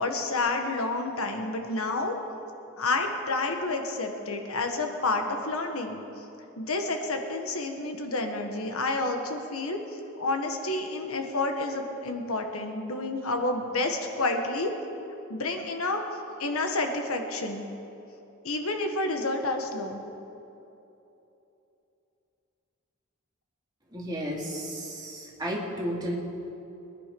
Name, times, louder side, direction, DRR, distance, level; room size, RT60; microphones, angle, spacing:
voice 1, 0.0-2.2 2.8-6.0 6.6-9.8 10.2-14.7 15.3-16.0 16.4-17.6 18.4-20.0, left 2 dB, 80° left, 4 dB, 1.5 m, -29 dB
voice 2, 23.9-26.1, equal, 20° right, -3 dB, 2.3 m, -33 dB
22.0 x 11.0 x 5.3 m, 2.9 s
head